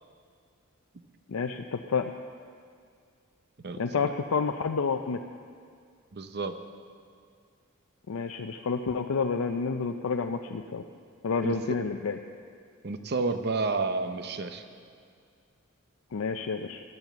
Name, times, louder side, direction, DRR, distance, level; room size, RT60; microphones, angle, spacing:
voice 1, 1.3-2.1 3.8-5.2 8.1-10.8 11.2-12.2 16.1-16.8, left 5 dB, 75° left, 5 dB, 0.5 m, -29 dB
voice 2, 3.6-4.1 6.1-6.6 11.4-11.6 12.8-14.6, right 3 dB, 50° right, 8 dB, 0.7 m, -30 dB
12.0 x 10.5 x 7.1 m, 2.2 s
head